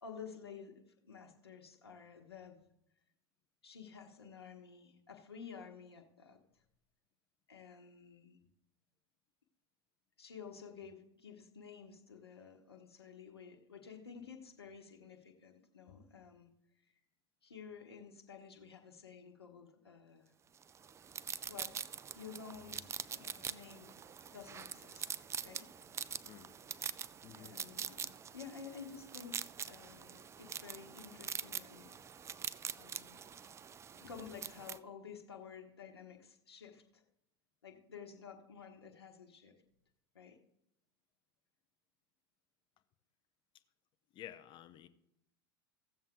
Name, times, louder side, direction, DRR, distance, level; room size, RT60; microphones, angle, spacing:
voice 1, 0.0-2.6 3.6-6.4 7.5-8.4 10.2-16.5 17.4-20.3 21.5-21.8 22.1-23.9 24.3-25.7 27.3-31.9 32.8-33.2 33.9-37.0 37.6-39.6 40.1-40.4, left 6 dB, 90° left, 3 dB, 1.3 m, -52 dB
sound 1, 20.6-34.8, right 7 dB, 20° right, 0.4 m, -44 dB
voice 2, 27.2-27.5 44.1-44.9, left 11 dB, 40° left, 9 dB, 1.0 m, -51 dB
16.0 x 7.3 x 3.8 m, 0.82 s
hypercardioid pair, 90°, 13 cm